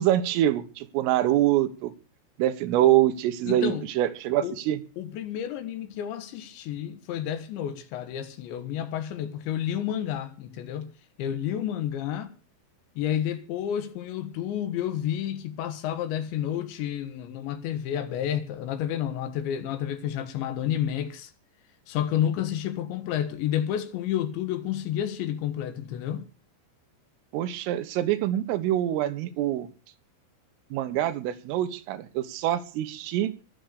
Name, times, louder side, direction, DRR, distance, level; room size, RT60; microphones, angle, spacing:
voice 1, 0.0-1.9 2.4-4.8 27.3-29.7 30.7-33.3, right 13 dB, 90° right, 3.9 m, -25 dB
voice 2, 3.5-3.9 4.4-4.6 5.0-10.9 11.2-12.4 13.0-21.3 21.9-26.3, left 10 dB, 70° left, 3.5 m, -30 dB
22.0 x 8.1 x 6.7 m
omnidirectional pair, 5.7 m